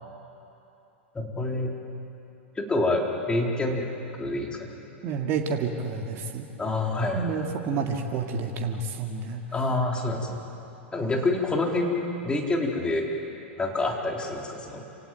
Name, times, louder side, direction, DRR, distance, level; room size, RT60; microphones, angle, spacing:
voice 1, 1.1-1.7 2.6-3.9 4.2-4.8 6.6-7.3 9.5-10.4 10.9-13.1 13.6-14.8, left 2 dB, 15° left, 0 dB, 3.9 m, -27 dB
voice 2, 5.0-6.5 7.1-9.4, right 5 dB, 40° right, 3 dB, 2.2 m, -29 dB
27.5 x 17.0 x 9.2 m, 2.9 s
figure-of-eight pair, 95°, 7 cm